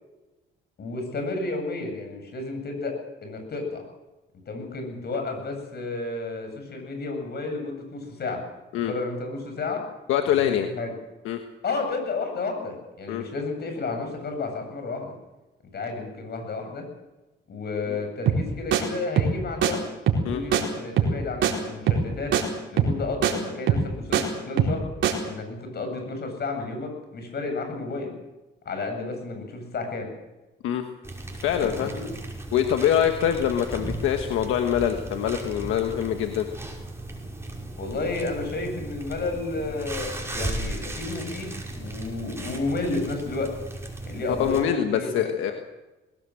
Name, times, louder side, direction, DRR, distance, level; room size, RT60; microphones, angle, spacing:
voice 1, 0.8-2.9 3.2-3.8 4.5-8.4 8.8-9.8 10.4-10.9 11.6-15.1 15.7-16.8 17.5-19.8 20.3-22.3 22.7-24.8 25.2-28.1 28.6-30.1 31.6-32.0 37.8-43.5 44.0-45.5, left 3 dB, 55° left, 5 dB, 7.9 m, -32 dB
voice 2, 10.1-10.7 11.2-11.4 13.1-13.2 17.9-18.0 20.2-20.4 30.6-30.8 31.4-31.9 32.5-36.5 44.4-45.5, left 10 dB, 90° left, 5 dB, 1.5 m, -24 dB
sound 1, 18.3-18.5 18.7-18.8 19.2-19.4 19.6-19.7 20.1-20.3 20.5-20.6 21.0-21.2 21.4-21.5 21.9-22.1 22.3-22.4 22.8-23.0 23.2-23.3 23.7-24.2 24.6-24.8 25.0-25.1, right 7 dB, 75° right, 4.2 m, -21 dB
sound 2, 31.0-44.6, right 1 dB, 15° right, 5.7 m, -36 dB
20.5 x 17.5 x 7.8 m, 1.1 s
cardioid pair, 90°, 20 cm